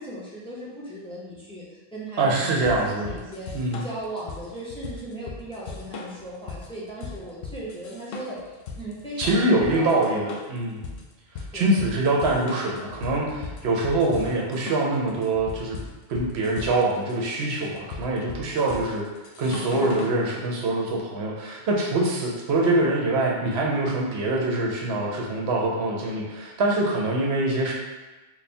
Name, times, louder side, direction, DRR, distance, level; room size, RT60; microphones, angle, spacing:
voice 1, 0.0-10.2 11.5-11.7, right 1 dB, 5° left, -7 dB, 0.7 m, -38 dB
voice 2, 2.2-3.2 3.5-3.8 9.2-10.8 11.5-15.8 16.1-19.0 19.4-27.7, right 2 dB, 85° right, -2 dB, 1.0 m, -24 dB
sound 1, 2.7-20.2, left 4 dB, 70° left, 0.7 m, -38 dB
3.4 x 2.3 x 4.2 m, 1.2 s
omnidirectional pair, 1.0 m